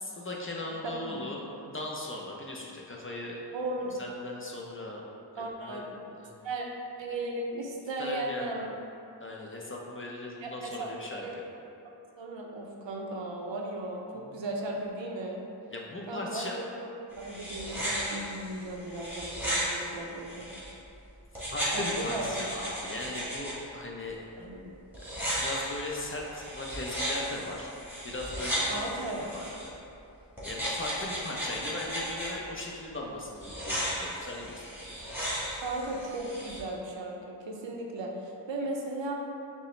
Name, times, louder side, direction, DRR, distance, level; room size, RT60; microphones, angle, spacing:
voice 1, 0.0-3.6 4.0-5.0 5.4-5.9 6.1-6.3 8.0-8.7 9.2-11.5 14.1-14.4 15.7-16.6 21.5-24.2 25.0-27.7 28.0-29.7 30.4-34.9 35.4-35.5, left 2 dB, 30° left, -2 dB, 0.5 m, -39 dB
voice 2, 0.8-1.2 3.5-3.9 5.4-5.9 6.4-6.7 7.0-8.7 10.4-10.9 11.1-11.3 12.2-15.4 16.1-16.9 17.2-20.4 21.7-22.5 24.4-24.7 28.7-29.2 35.6-39.1, right 2 dB, 85° right, 0 dB, 0.6 m, -36 dB
sound 1, 17.1-20.7 21.3-23.5 24.9-29.7 30.4-32.3 33.4-36.6, equal, 5° right, 1.3 m, -35 dB
5.2 x 2.0 x 3.1 m, 2.6 s
wide cardioid pair, 50°, 44 cm